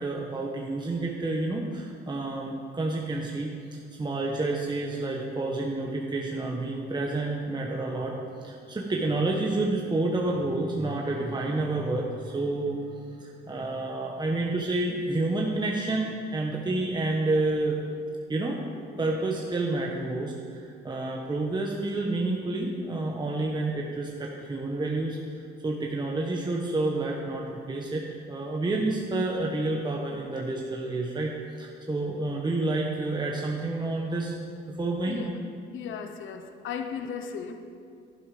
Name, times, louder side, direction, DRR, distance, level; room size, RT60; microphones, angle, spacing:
voice 1, 0.0-8.2 8.4-12.8 13.2-17.8 18.3-25.2 25.6-31.3 31.6-34.3 34.7-35.2, right 2 dB, 20° right, -1 dB, 1.3 m, -29 dB
voice 2, 35.7-37.5, left 7 dB, 75° left, 7 dB, 0.9 m, -36 dB
11.0 x 11.0 x 5.1 m, 2.4 s
cardioid pair, 90°, 20 cm